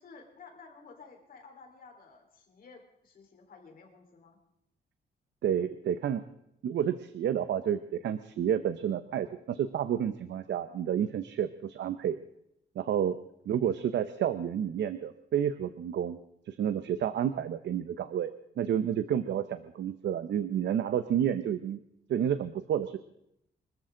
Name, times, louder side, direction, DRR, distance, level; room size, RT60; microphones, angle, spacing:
voice 1, 0.0-4.4, left 4 dB, 55° left, 2 dB, 4.2 m, -53 dB
voice 2, 5.4-6.2 6.6-12.2 12.8-13.2 13.5-16.2 16.5-21.8 22.1-23.0, right 9 dB, 75° right, 11 dB, 0.8 m, -30 dB
25.0 x 14.0 x 3.9 m, 0.78 s
wide cardioid pair, 165°, 18 cm